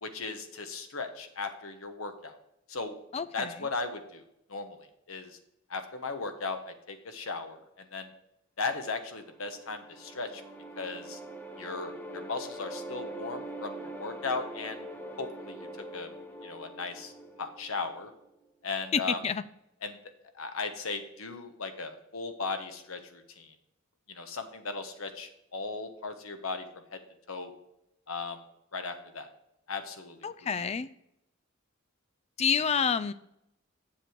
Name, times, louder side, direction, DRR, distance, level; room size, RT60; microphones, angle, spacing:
voice 1, 0.0-2.4 2.7-3.0 3.3-4.2 4.5-4.8 5.1-5.4 5.7-8.1 8.6-10.4 10.8-11.2 11.6-14.9 15.2-15.7 15.9-16.1 16.4-17.1 17.4-18.1 18.6-19.2 19.8-20.0 20.3-23.5 24.1-26.6 26.9-27.0 27.3-27.5 28.1-28.4 28.7-29.3 29.7-30.2, left 4 dB, 75° left, 7 dB, 1.1 m, -37 dB
voice 2, 3.1-3.5 18.9-19.4 30.2-30.9 32.4-33.1, left 6 dB, 30° left, 15 dB, 0.3 m, -28 dB
sound 1, 9.2-18.3, right 1 dB, 10° left, 0.7 m, -43 dB
7.6 x 6.8 x 4.6 m, 0.83 s
head